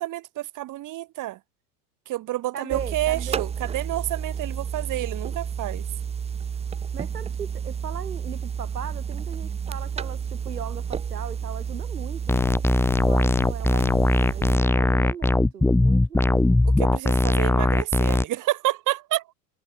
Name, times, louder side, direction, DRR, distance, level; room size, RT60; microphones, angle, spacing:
voice 1, 0.0-1.4 2.1-5.8 16.8-19.3, right 16 dB, 40° right, 3.3 m, -29 dB
voice 2, 2.5-3.5 6.9-16.6, right 8 dB, 85° right, 2.6 m, -38 dB
sound 1, 2.7-14.6, right 7 dB, 15° right, 0.6 m, -31 dB
sound 2, 12.3-18.2, left 2 dB, 5° left, 1.8 m, -20 dB
figure-of-eight pair, 85°, 46 cm